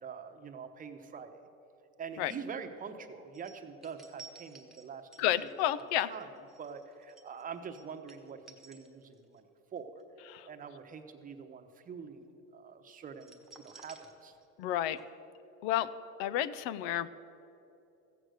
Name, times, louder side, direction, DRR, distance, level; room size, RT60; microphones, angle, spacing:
voice 1, 0.0-1.5 2.0-5.5 5.8-10.0 10.5-14.4, right 6 dB, 30° right, 6 dB, 0.9 m, -45 dB
sound 1, 3.3-9.4 9.8-10.0 13.1-14.7 15.0-15.1, right 4 dB, ahead, 1.2 m, -56 dB
voice 2, 5.2-6.1 10.3-10.5 14.6-15.0 15.6-15.9 16.2-17.1, left 12 dB, 85° left, 17 dB, 0.6 m, -31 dB
14.5 x 8.0 x 6.4 m, 2.9 s
cardioid pair, 130°, 30 cm